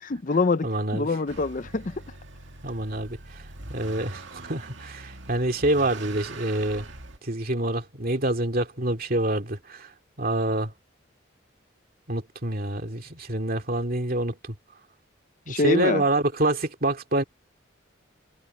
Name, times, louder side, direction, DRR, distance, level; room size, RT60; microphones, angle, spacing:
voice 1, 0.0-0.7 0.9-1.9 15.5-16.0, left 3 dB, 40° left, 0.6 m, -25 dB
voice 2, 0.6-1.1 2.6-3.2 3.7-6.9 7.2-9.9 10.2-10.7 12.1-14.5 15.5-17.2, right 1 dB, 45° right, 2.5 m, -26 dB
Motor vehicle (road) / Accelerating revving vroom, 1.3-7.2, right 2 dB, 65° right, 2.3 m, -42 dB
head